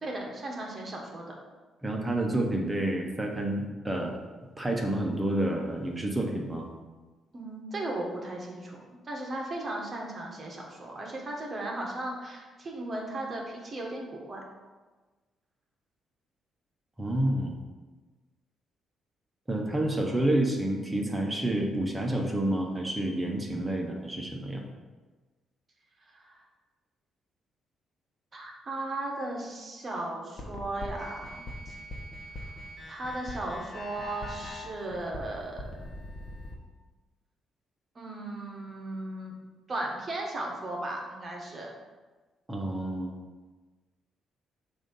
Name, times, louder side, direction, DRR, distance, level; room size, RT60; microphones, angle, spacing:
voice 1, 0.0-1.3 7.3-14.4 26.1-26.4 28.3-31.4 31.7-31.8 32.9-35.7 37.9-39.3 39.7-41.7, right 2 dB, 35° right, -1 dB, 1.3 m, -36 dB
voice 2, 1.8-4.2 4.6-6.7 17.0-17.5 19.5-24.6 42.5-43.1, right 1 dB, 15° right, 1 dB, 1.0 m, -29 dB
sound 1, 30.4-36.5, left 1 dB, 40° left, 1.1 m, -41 dB
7.0 x 2.7 x 5.3 m, 1.3 s
cardioid pair, 90°, 0 cm